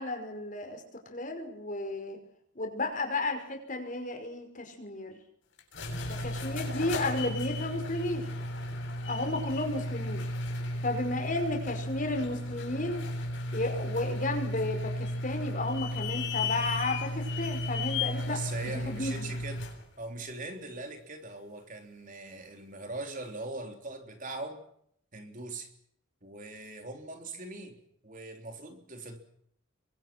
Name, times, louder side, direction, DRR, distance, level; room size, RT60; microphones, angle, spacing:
voice 1, 0.0-2.2 2.6-5.2 6.2-8.3 9.1-10.3 10.8-13.1 13.5-18.4 18.6-19.3, left 2 dB, 40° left, 5 dB, 5.5 m, -33 dB
sound 1, 5.6-19.8, left 1 dB, 65° left, 8.0 m, -34 dB
voice 2, 18.2-19.7 20.0-24.6 25.1-25.7 26.2-27.8 28.0-29.2, right 2 dB, 40° right, 4 dB, 3.7 m, -41 dB
29.0 x 24.0 x 6.1 m, 0.68 s
head